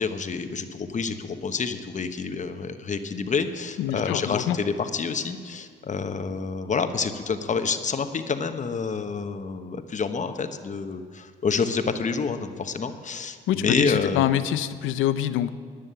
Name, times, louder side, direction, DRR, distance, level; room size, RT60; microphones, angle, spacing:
voice 1, 0.0-14.3, left 5 dB, 40° left, 8 dB, 1.0 m, -28 dB
voice 2, 3.8-4.6 13.5-15.5, left 11 dB, 90° left, 13 dB, 0.6 m, -25 dB
11.0 x 10.0 x 6.9 m, 2.1 s
cardioid pair, 90°, 20 cm